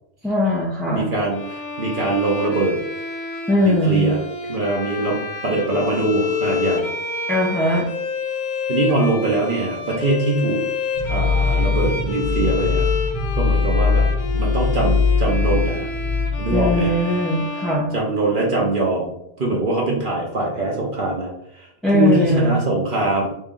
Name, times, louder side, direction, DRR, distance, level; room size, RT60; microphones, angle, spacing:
voice 1, 0.2-1.1 3.5-4.1 7.3-7.9 16.5-17.9 21.8-22.6, left 1 dB, ahead, -6 dB, 0.4 m, -20 dB
voice 2, 0.9-2.8 3.6-4.2 4.5-6.9 8.7-10.6 11.1-12.8 13.4-15.9 16.4-17.0 17.9-19.1 19.4-21.7 21.9-23.3, right 2 dB, 50° right, -2 dB, 0.9 m, -22 dB
Bowed string instrument, 1.3-18.5, left 4 dB, 85° left, 1.0 m, -29 dB
sound 1, 11.0-16.8, left 4 dB, 35° left, 0.7 m, -21 dB
3.2 x 3.1 x 3.6 m, 0.79 s
omnidirectional pair, 1.2 m